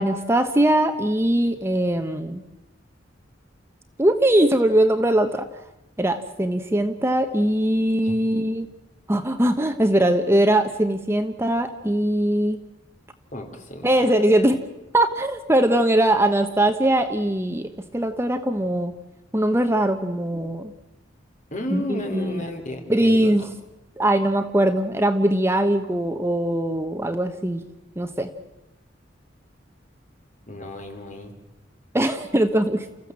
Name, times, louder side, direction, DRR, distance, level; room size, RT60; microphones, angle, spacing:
voice 1, 0.0-2.4 4.0-5.5 6.0-8.7 9.1-12.6 13.8-14.6 14.9-18.9 19.3-20.7 21.7-22.4 22.9-23.5 24.0-27.6 28.0-28.3 31.9-32.9, right 1 dB, 15° right, 7 dB, 1.0 m, -21 dB
voice 2, 13.3-13.9 21.5-23.3 30.5-31.3, left 1 dB, 40° left, 4 dB, 3.3 m, -33 dB
29.5 x 15.0 x 7.5 m, 0.98 s
head